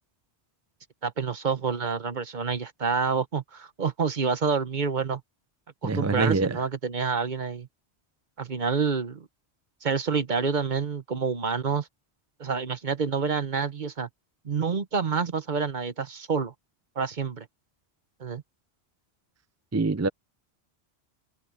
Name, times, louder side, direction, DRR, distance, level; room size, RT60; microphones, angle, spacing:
voice 1, 1.0-5.2 5.8-7.7 8.4-9.3 9.8-11.9 12.4-14.1 14.4-16.5 17.0-17.5 18.2-18.4, right 5 dB, 45° right, 1.1 m, -28 dB
voice 2, 5.8-6.6 19.7-20.1, right 3 dB, 25° right, 0.4 m, -25 dB
omnidirectional pair, 1.1 m